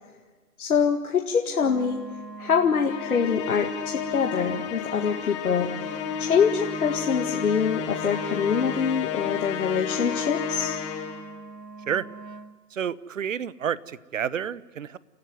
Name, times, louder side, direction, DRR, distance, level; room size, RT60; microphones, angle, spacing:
voice 1, 0.6-2.0 2.4-10.8, left 6 dB, 65° left, 3 dB, 2.0 m, -25 dB
Wind instrument woodwind instrument, 1.6-12.6, right 4 dB, 90° right, 1.6 m, -42 dB
Musical instrument, 2.9-11.3, left 7 dB, 20° left, 1.6 m, -32 dB
voice 2, 12.7-15.0, right 8 dB, 55° right, 20 dB, 0.9 m, -29 dB
29.5 x 15.0 x 9.5 m, 1.3 s
hypercardioid pair, 150°, 48 cm